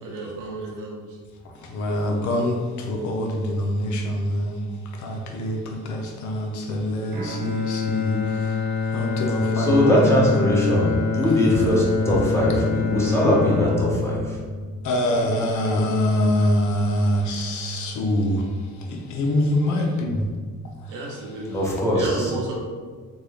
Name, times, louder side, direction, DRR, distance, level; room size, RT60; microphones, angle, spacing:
voice 1, 0.0-1.0 20.9-22.5, right 2 dB, 85° right, -2 dB, 0.9 m, -32 dB
voice 2, 1.6-4.6 4.9-8.6 8.9-10.0 14.8-18.5 18.9-20.3 20.9-21.1, left 1 dB, 70° left, 2 dB, 0.6 m, -24 dB
Bowed string instrument, 7.1-15.3, left 5 dB, 35° right, 1.0 m, -26 dB
voice 3, 9.6-14.4 21.5-22.3, left 1 dB, 10° left, -6 dB, 1.1 m, -20 dB
3.5 x 2.3 x 3.1 m, 1.5 s
cardioid pair, 90°, 30 cm